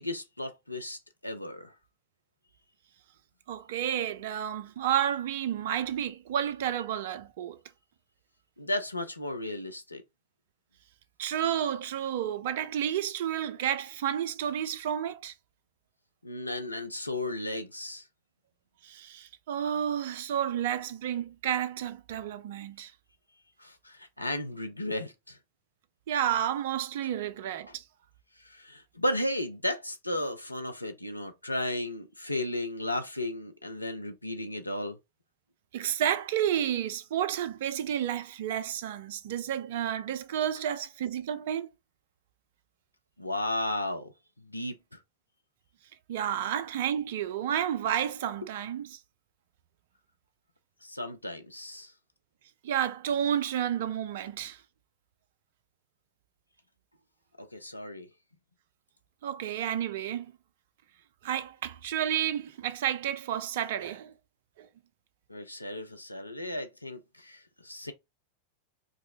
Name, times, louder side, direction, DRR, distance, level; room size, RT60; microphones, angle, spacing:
voice 1, 0.0-1.7 8.6-10.0 16.2-18.1 23.6-25.4 28.4-35.0 43.2-44.1 44.4-45.0 50.8-51.9 57.4-58.1 65.3-67.9, left 1 dB, 85° left, 0.5 m, -34 dB
voice 2, 3.5-7.6 11.2-15.3 18.8-22.9 26.1-27.8 35.7-41.7 46.1-49.0 52.6-54.6 59.2-60.3 61.2-64.1 64.6-64.7, right 10 dB, 55° right, 0.4 m, -31 dB
4.8 x 2.0 x 2.5 m
figure-of-eight pair, 90°, 0 cm